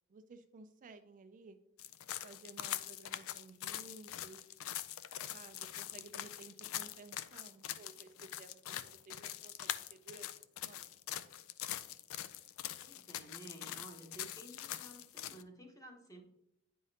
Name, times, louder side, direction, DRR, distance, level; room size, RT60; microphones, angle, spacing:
voice 1, 0.1-1.6 2.2-4.5 5.3-11.0, right 3 dB, 40° right, 8 dB, 0.4 m, -56 dB
sound 1, 1.8-15.4, left 12 dB, 70° left, 0.4 m, -43 dB
voice 2, 12.8-16.2, right 1 dB, 15° left, 3 dB, 1.1 m, -53 dB
9.5 x 4.9 x 2.8 m, 0.86 s
head